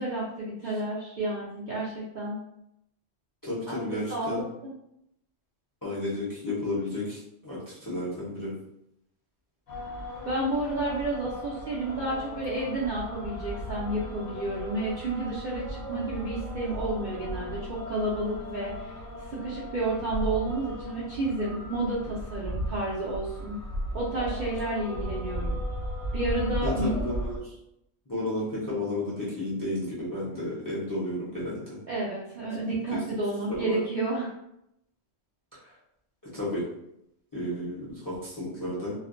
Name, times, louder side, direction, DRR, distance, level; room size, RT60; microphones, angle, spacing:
voice 1, 0.0-2.4 3.7-4.7 10.2-19.0 19.3-23.6 23.9-25.6 26.1-27.0 31.9-34.3, right 2 dB, 60° right, -7 dB, 0.5 m, -31 dB
voice 2, 3.4-4.4 5.8-8.5 26.6-27.5 28.1-31.6 32.9-33.0 33.6-33.8 35.6-35.7 36.3-36.6 37.3-38.9, left 1 dB, 25° left, -8 dB, 0.5 m, -32 dB
sound 1, 9.7-27.4, equal, 55° left, 1.0 m, -36 dB
2.4 x 2.1 x 2.5 m, 0.80 s
omnidirectional pair, 1.3 m